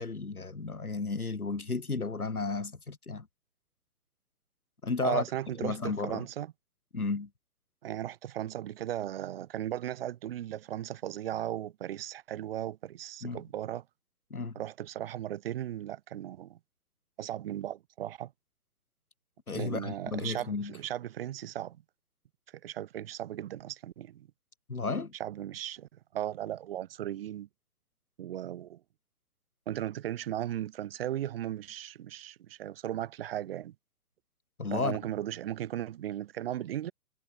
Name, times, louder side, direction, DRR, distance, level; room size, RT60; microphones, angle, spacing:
voice 1, 0.0-3.3 4.8-5.2 5.6-6.3 6.9-7.3 13.2-13.4 14.3-14.6 19.5-20.7 24.7-25.1 34.6-35.0, left 4 dB, 85° left, 3.1 m, -33 dB
voice 2, 5.0-6.5 7.8-13.8 14.6-16.6 17.2-18.3 19.5-21.8 22.6-24.3 25.2-27.5 28.2-28.8 29.7-33.7 34.7-36.9, right 12 dB, 40° right, 2.3 m, -36 dB
figure-of-eight pair, 130°, 43 cm